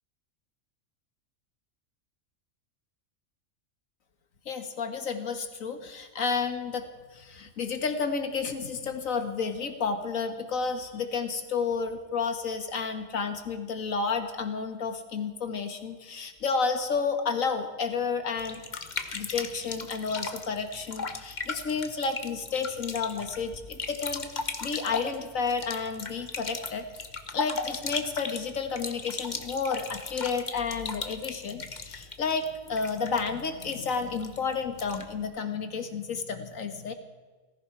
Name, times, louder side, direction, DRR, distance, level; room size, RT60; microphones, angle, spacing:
voice 1, 4.5-18.6 19.1-24.3 24.6-26.9 27.3-36.9, left 5 dB, 85° left, 7 dB, 2.0 m, -31 dB
sound 1, 18.4-35.2, left 4 dB, 35° left, 1.2 m, -37 dB
18.5 x 15.5 x 4.6 m, 1.4 s
omnidirectional pair, 1.4 m